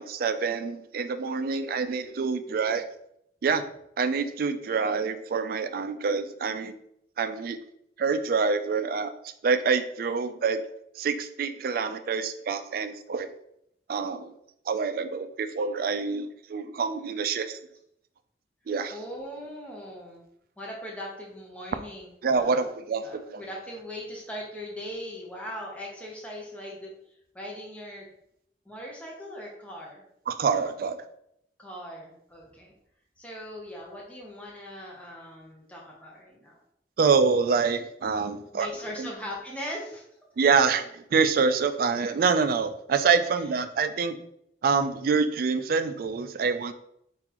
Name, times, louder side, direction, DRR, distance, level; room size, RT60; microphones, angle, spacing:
voice 1, 0.0-2.8 3.4-3.6 4.0-6.7 7.2-7.6 8.0-10.6 11.0-13.3 13.9-14.3 14.7-17.6 18.7-19.0 22.2-23.4 30.3-31.0 37.0-38.7 39.0-39.1 40.4-44.2 44.6-46.7, right 5 dB, 55° right, 11 dB, 0.3 m, -26 dB
voice 2, 2.5-2.8 18.9-20.2 20.6-22.1 22.4-22.7 23.0-26.9 27.3-28.1 28.6-30.0 31.6-32.7 33.2-36.6 38.2-40.0, equal, 10° left, -3 dB, 0.8 m, -40 dB
4.7 x 3.7 x 2.9 m, 0.75 s
head